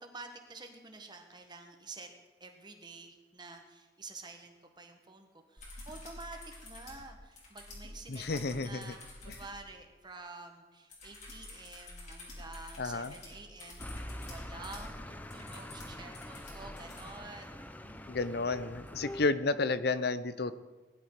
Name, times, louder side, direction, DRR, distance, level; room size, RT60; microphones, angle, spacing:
voice 1, 0.0-2.1 2.4-8.2 8.5-9.0 9.2-18.2, right 3 dB, 25° right, 4 dB, 1.6 m, -49 dB
sound 1, 5.6-9.5 10.9-17.1 18.9-19.0, left 2 dB, 40° left, 4.7 m, -49 dB
voice 2, 8.1-8.9 9.3-9.4 12.8-13.1 18.1-20.5, left 3 dB, 60° left, 14 dB, 0.7 m, -31 dB
sound 2, 13.8-19.3, left 1 dB, 10° left, 0.6 m, -45 dB
19.5 x 11.5 x 5.0 m, 1.2 s
head